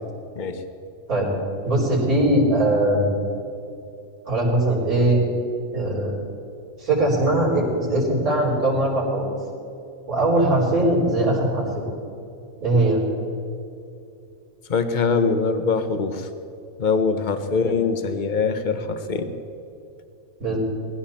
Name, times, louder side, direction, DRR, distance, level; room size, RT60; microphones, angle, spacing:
voice 1, 1.6-3.1 4.2-5.2 5.7-6.2 6.8-9.3 10.1-11.8 12.6-13.0 17.5-17.8 20.4-20.6, right 1 dB, 85° right, -5 dB, 4.9 m, -20 dB
voice 2, 14.7-16.3 16.8-19.3, left 4 dB, 35° left, 8 dB, 1.1 m, -23 dB
20.0 x 16.0 x 4.3 m, 2.6 s
omnidirectional pair, 1.5 m